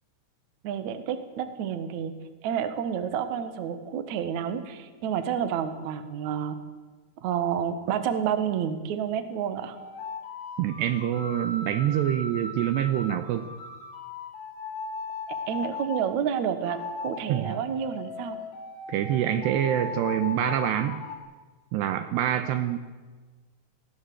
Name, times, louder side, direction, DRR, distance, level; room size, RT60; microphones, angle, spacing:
voice 1, 0.6-2.1 2.4-6.6 7.2-9.8 15.5-16.8 17.0-18.4, right 8 dB, 60° right, 9 dB, 2.0 m, -29 dB
sound 1, 9.7-16.1 16.6-21.2, left 4 dB, 65° left, 4.4 m, -38 dB
voice 2, 10.6-13.5 17.3-17.5 18.9-21.1 21.7-22.8, right 11 dB, 80° right, 10 dB, 2.7 m, -26 dB
20.5 x 16.5 x 8.0 m, 1.4 s
omnidirectional pair, 5.5 m